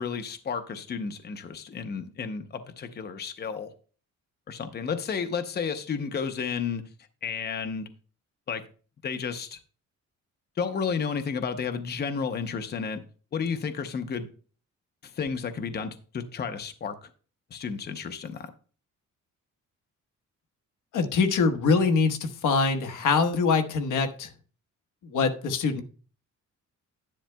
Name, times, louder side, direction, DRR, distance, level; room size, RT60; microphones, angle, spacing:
voice 1, 0.0-3.7 4.5-6.9 7.2-7.9 8.5-8.6 9.0-9.6 10.6-13.0 13.3-14.3 15.0-17.1 17.5-18.5, left 6 dB, 35° left, 0.7 m, -32 dB
voice 2, 20.9-24.3 25.0-25.8, left 4 dB, 85° left, 1.3 m, -24 dB
11.5 x 10.5 x 2.2 m
cardioid pair, 155°, 30 cm